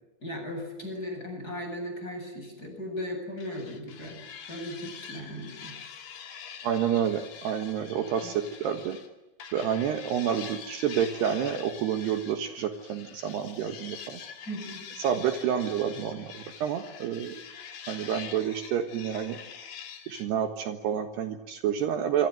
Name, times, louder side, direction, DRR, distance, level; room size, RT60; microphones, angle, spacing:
voice 1, 0.2-4.2 4.5-5.7 8.2-8.3 14.5-14.8, left 1 dB, 20° left, 4 dB, 8.1 m, -37 dB
sound 1, 3.4-9.1 9.4-20.3, left 7 dB, 60° left, 4.5 m, -45 dB
voice 2, 6.6-9.0 9.5-14.2 15.0-17.3 17.9-19.4 20.1-22.3, right 9 dB, 70° right, 7 dB, 3.4 m, -29 dB
27.5 x 25.5 x 7.7 m, 1.0 s
omnidirectional pair, 5.3 m